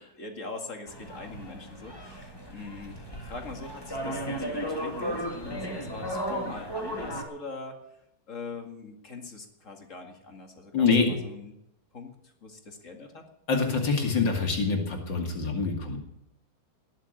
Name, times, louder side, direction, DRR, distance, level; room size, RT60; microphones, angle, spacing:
voice 1, 0.0-11.6 11.9-13.3, left 3 dB, 45° left, 4 dB, 2.5 m, -42 dB
sound 1, 0.9-7.2, equal, 15° left, 2.6 m, -35 dB
voice 2, 10.7-11.1 13.5-16.0, left 4 dB, 80° left, 3 dB, 3.1 m, -25 dB
19.0 x 7.4 x 9.0 m, 0.81 s
omnidirectional pair, 1.9 m